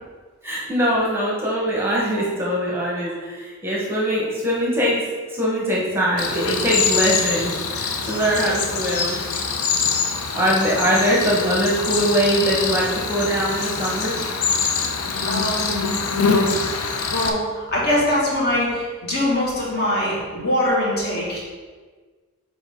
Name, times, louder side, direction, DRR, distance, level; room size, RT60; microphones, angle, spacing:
voice 1, 0.4-5.0 5.3-9.2 10.3-14.2, equal, 10° right, -4 dB, 0.9 m, -22 dB
Cricket, 6.2-17.3, left 5 dB, 85° left, 0.6 m, -24 dB
voice 2, 15.2-15.9 17.1-21.4, left 1 dB, 50° left, -5 dB, 1.7 m, -23 dB
6.3 x 4.4 x 3.6 m, 1.4 s
head